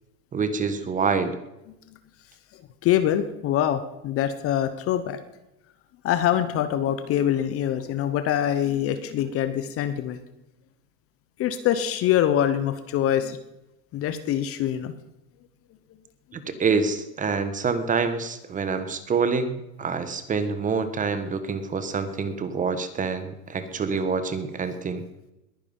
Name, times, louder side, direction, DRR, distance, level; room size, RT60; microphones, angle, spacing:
voice 1, 0.3-1.4 16.3-25.0, right 5 dB, 15° right, 11 dB, 1.3 m, -26 dB
voice 2, 2.5-5.2 6.0-10.2 11.4-13.4 13.9-14.9 16.5-16.6, left 11 dB, 30° left, 11 dB, 1.0 m, -24 dB
21.0 x 9.8 x 5.6 m, 0.93 s
hypercardioid pair, 130°, 49 cm